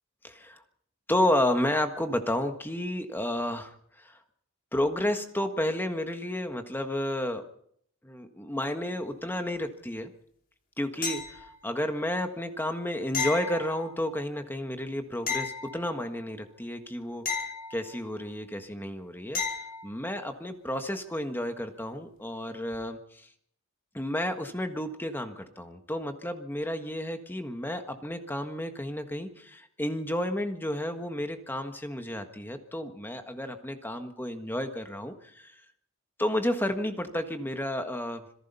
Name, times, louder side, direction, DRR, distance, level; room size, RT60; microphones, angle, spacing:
voice 1, 0.2-0.6 1.1-4.2 4.7-7.4 8.0-10.1 10.8-19.4 19.8-23.3 23.9-35.5 36.2-38.2, left 1 dB, 10° left, 6 dB, 1.5 m, -31 dB
sound 1, 11.0-11.8 13.1-14.2 15.3-16.3 17.2-18.3 19.3-20.0 22.7-22.8, left 5 dB, 40° left, 5.0 m, -34 dB
26.5 x 18.0 x 5.6 m, 0.68 s
head